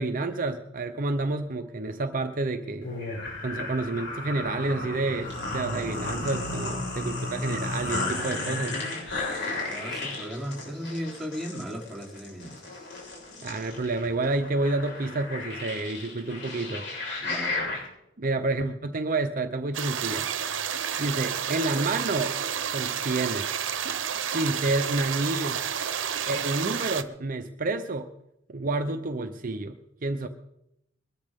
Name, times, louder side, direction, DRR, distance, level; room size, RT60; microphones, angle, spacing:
voice 1, 0.0-2.9 3.4-8.8 13.4-16.8 18.2-20.3 21.0-22.3 22.7-23.5 24.3-25.6 26.3-28.1 28.5-30.3, right 2 dB, 45° right, 7 dB, 0.8 m, -29 dB
sound 1, 2.8-17.8, left 2 dB, 65° left, 7.4 m, -34 dB
voice 2, 9.5-12.8 17.2-17.9, equal, ahead, -3 dB, 3.6 m, -37 dB
sound 2, 19.7-27.0, right 8 dB, 75° right, 0.9 m, -30 dB
22.0 x 13.5 x 3.7 m, 0.82 s
head